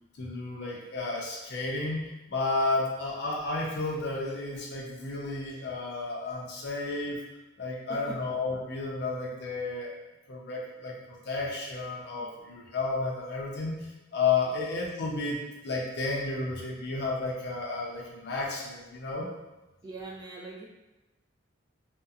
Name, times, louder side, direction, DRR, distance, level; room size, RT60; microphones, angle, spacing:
voice 1, 0.2-7.2 7.6-9.9 10.3-19.3, left 3 dB, 55° left, -3 dB, 0.5 m, -32 dB
voice 2, 19.8-20.6, right 2 dB, 20° right, -3 dB, 0.3 m, -42 dB
2.6 x 2.1 x 2.3 m, 1.1 s
head